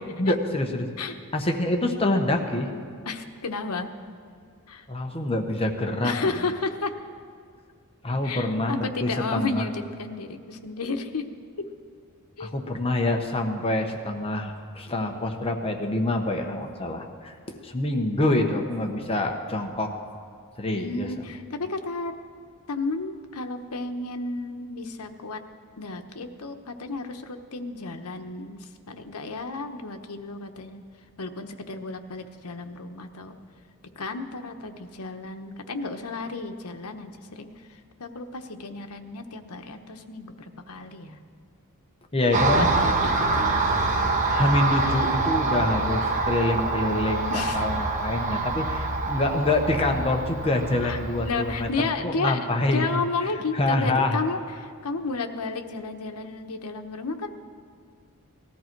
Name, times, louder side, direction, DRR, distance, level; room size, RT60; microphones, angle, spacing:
voice 1, 0.2-0.9 1.3-2.7 4.9-6.1 8.0-9.6 12.4-19.9 20.6-21.1 42.1-42.7 44.3-52.8 53.5-54.2, left 2 dB, 25° left, 3 dB, 1.0 m, -26 dB
voice 2, 3.1-3.9 4.7-4.8 6.0-6.9 8.2-11.3 12.4-12.5 20.8-22.1 22.7-25.4 25.8-30.8 31.2-33.4 34.0-41.2 42.3-43.6 47.3-47.7 48.3-48.4 50.8-51.0 51.2-52.4 52.7-57.3, left 3 dB, 80° left, 6 dB, 1.0 m, -32 dB
Car passing by, 42.3-51.7, right 3 dB, 35° right, 1.3 m, -25 dB
19.0 x 13.5 x 4.6 m, 2.2 s
head